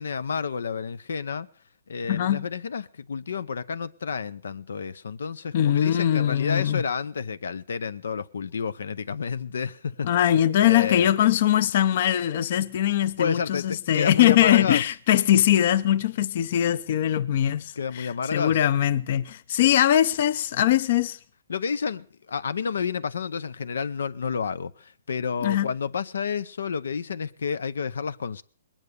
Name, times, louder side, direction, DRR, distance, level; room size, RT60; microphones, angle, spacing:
voice 1, 0.0-1.5 1.9-10.1 10.6-11.1 13.2-14.8 17.8-18.6 21.5-28.4, left 6 dB, 85° left, 0.7 m, -30 dB
voice 2, 2.1-2.4 5.5-6.8 10.0-21.2 25.4-25.7, left 11 dB, 45° left, 0.6 m, -22 dB
20.5 x 9.0 x 6.7 m
hypercardioid pair, 165°, 0 cm